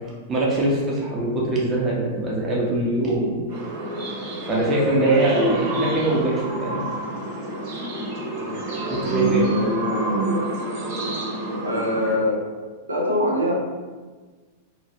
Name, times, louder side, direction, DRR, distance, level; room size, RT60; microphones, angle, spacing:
voice 1, 0.1-3.4 4.5-6.8 8.9-9.5, right 2 dB, 25° right, -4 dB, 0.8 m, -23 dB
sound 1, 3.5-12.2, right 1 dB, 55° right, 1.0 m, -26 dB
voice 2, 11.6-12.4 12.9-13.5, left 1 dB, 80° right, -1 dB, 0.6 m, -23 dB
3.0 x 2.4 x 2.8 m, 1.4 s
figure-of-eight pair, 95°, 0 cm